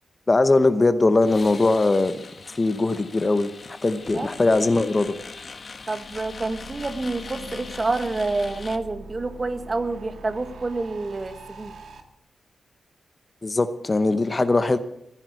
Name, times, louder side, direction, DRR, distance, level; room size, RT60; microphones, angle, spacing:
voice 1, 0.3-2.2 2.5-5.1 13.4-14.8, left 2 dB, 25° left, 11 dB, 0.8 m, -20 dB
sound 1, 1.2-8.8, left 4 dB, 45° left, 1.4 m, -41 dB
voice 2, 5.9-11.7, right 3 dB, 30° right, 9 dB, 1.4 m, -28 dB
sound 2, 5.9-12.0, right 2 dB, 80° right, 1.9 m, -43 dB
15.5 x 10.5 x 8.2 m, 0.82 s
wide cardioid pair, 120°, 0 cm